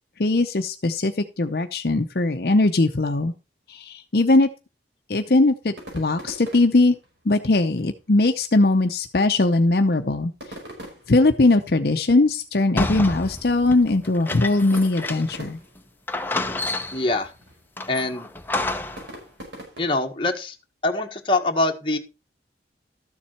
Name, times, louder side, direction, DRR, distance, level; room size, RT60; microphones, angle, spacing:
voice 1, 0.2-3.3 3.7-4.5 5.1-7.0 7.2-10.6 11.1-15.6, left 2 dB, 55° left, 6 dB, 0.7 m, -20 dB
sound 1, 5.6-20.2, right 1 dB, 90° right, 5.1 m, -45 dB
sound 2, 12.8-15.5 15.8-15.9 16.1-17.2 17.8-19.1, left 2 dB, 10° left, 0.8 m, -29 dB
voice 2, 16.9-17.3 17.9-18.3 19.8-20.6 20.8-22.0, left 2 dB, 30° left, 4 dB, 1.3 m, -24 dB
13.0 x 7.3 x 4.4 m, 0.30 s
head